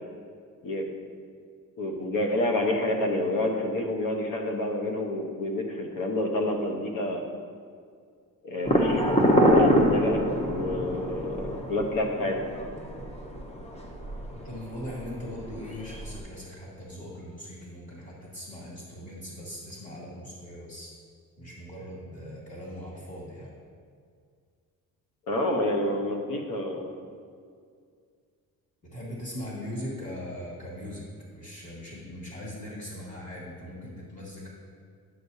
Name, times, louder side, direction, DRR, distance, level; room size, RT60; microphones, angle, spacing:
voice 1, 1.8-7.2 8.4-10.2 10.5-12.4 25.3-27.0, left 1 dB, 65° left, 2 dB, 1.1 m, -28 dB
sound 1, 8.6-16.2, equal, 20° left, 0.8 m, -26 dB
voice 2, 14.3-20.9 21.4-23.5 28.8-34.5, left 1 dB, 35° left, -6 dB, 2.0 m, -40 dB
10.0 x 6.4 x 2.8 m, 2.2 s
cardioid pair, 115°, 35 cm